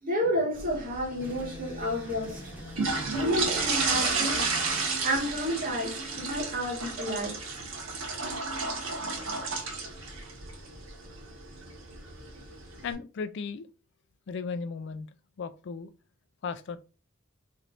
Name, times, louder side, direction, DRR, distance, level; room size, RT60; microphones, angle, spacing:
voice 1, 0.0-2.4 3.1-4.6 5.0-7.4, equal, 45° right, 1.6 m, -30 dB
sound 1, 0.6-12.9, right 4 dB, 85° right, 1.3 m, -33 dB
sound 2, 1.2-4.9, equal, 10° right, 1.1 m, -44 dB
voice 2, 12.8-13.7 14.3-15.1 15.4-15.9 16.4-16.8, left 5 dB, 60° left, 0.4 m, -35 dB
4.3 x 3.1 x 2.6 m
head